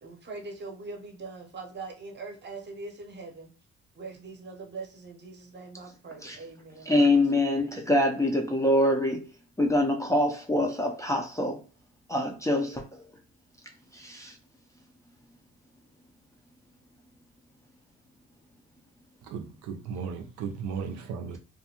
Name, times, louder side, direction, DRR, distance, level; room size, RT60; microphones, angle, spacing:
voice 1, 0.0-3.5 3.9-7.3 8.2-8.5, right 3 dB, 35° right, 0.8 m, -42 dB
voice 2, 6.9-9.2 9.6-11.6 12.1-12.8 13.9-14.4, left 1 dB, 10° left, 0.4 m, -25 dB
voice 3, 19.3-21.4, right 6 dB, 80° right, 0.5 m, -35 dB
2.4 x 2.2 x 2.8 m
cardioid pair, 90°, 30 cm